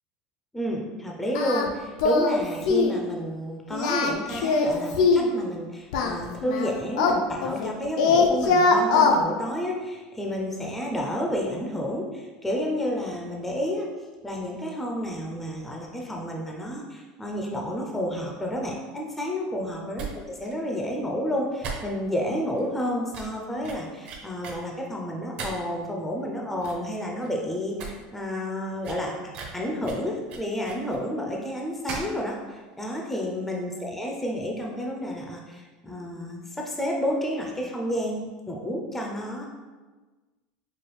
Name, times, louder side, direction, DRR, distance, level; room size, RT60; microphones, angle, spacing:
voice 1, 0.5-13.9 14.2-29.1 29.5-39.5, equal, 5° left, -1 dB, 0.4 m, -30 dB
Singing, 1.3-1.7 2.0-2.4 2.7-3.0 3.7-5.3 5.9-7.7 8.0-9.2, left 4 dB, 80° left, 0.5 m, -21 dB
sound 1, 19.9-20.1 20.4-20.5 20.8-20.9 21.6-22.2 22.6-22.7 23.1-23.4 23.6-24.6 25.4-25.8 26.2-26.3 26.6-26.9 27.2-27.3 27.6-27.9 28.2-28.3 28.8-31.0 31.9-32.2 32.4-32.5, right 5 dB, 40° right, 0.6 m, -37 dB
4.7 x 2.3 x 3.1 m, 1.3 s
supercardioid pair, 155°, 3 cm